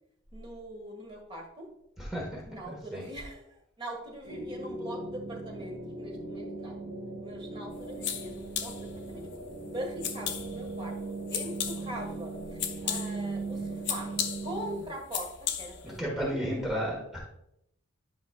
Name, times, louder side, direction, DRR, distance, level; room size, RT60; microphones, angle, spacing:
voice 1, 0.3-1.7 2.5-6.8 7.2-9.3 9.6-11.0 11.3-14.1 14.4-15.3 15.6-16.8, right 1 dB, 25° right, 0 dB, 1.4 m, -42 dB
voice 2, 2.0-3.0 15.8-17.2, equal, ahead, -4 dB, 1.2 m, -33 dB
sound 1, 4.2-14.8, right 3 dB, 45° right, 1.2 m, -39 dB
sound 2, 7.7-16.0, left 8 dB, 60° left, 0.6 m, -37 dB
11.0 x 5.1 x 2.3 m, 0.79 s
head